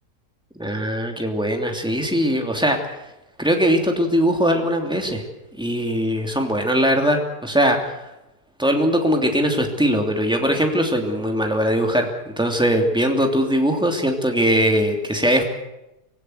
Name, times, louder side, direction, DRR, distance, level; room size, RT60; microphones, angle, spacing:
voice 1, 0.6-3.0 3.4-5.2 5.6-7.9 8.6-15.4, equal, 5° right, 2 dB, 2.9 m, -20 dB
25.5 x 16.0 x 8.0 m, 0.93 s
omnidirectional pair, 1.7 m